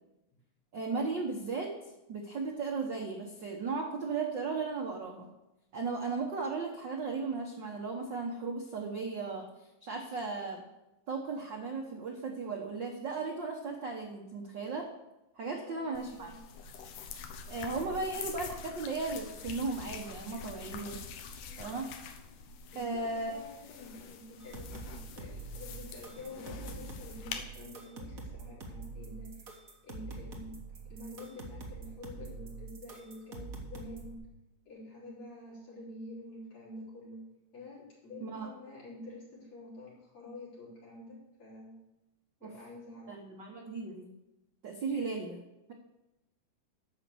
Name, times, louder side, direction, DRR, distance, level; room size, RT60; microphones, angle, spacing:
voice 1, 0.7-1.7 2.1-5.3 5.7-9.5 9.8-10.6 11.1-14.9 15.4-16.3 17.5-21.0 21.6-21.9 22.7-23.3 38.2-38.5 42.4-42.5 43.1-44.1 44.6-45.4, right 4 dB, 80° right, 1 dB, 1.0 m, -36 dB
voice 2, 15.4-16.4 18.0-18.1 22.7-29.6 29.8-30.6 30.9-34.2 34.7-37.2 37.5-41.8 42.4-43.1 44.9-45.0, left 2 dB, 50° left, -7 dB, 5.5 m, -48 dB
sound 1, 15.9-27.4, left 6 dB, 75° left, 2.4 m, -45 dB
sound 2, 24.4-34.1, right 3 dB, 50° right, 1.0 m, -45 dB
10.5 x 6.2 x 7.0 m, 0.94 s
omnidirectional pair, 3.8 m